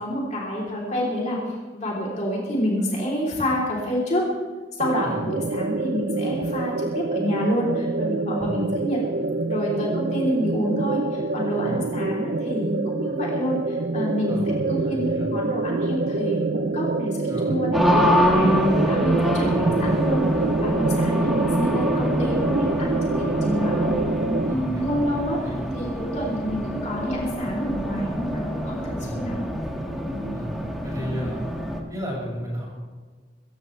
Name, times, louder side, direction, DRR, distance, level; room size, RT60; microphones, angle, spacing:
voice 1, 0.0-4.2 4.8-9.0 9.4-20.3 20.6-23.9 24.5-25.4 25.7-29.4, equal, 40° left, -4 dB, 3.4 m, -28 dB
sound 1, 4.8-24.5, right 3 dB, 50° right, 0.6 m, -26 dB
voice 2, 14.3-15.3 17.3-17.6 19.5-19.7 24.4-25.0 25.4-25.6 29.0-29.2 30.3-30.5 30.8-31.4 31.9-32.6, equal, 20° right, -4 dB, 6.7 m, -34 dB
Race car auto racing, 17.7-31.8, equal, ahead, 1.9 m, -25 dB
24.5 x 15.0 x 3.3 m, 1.4 s
head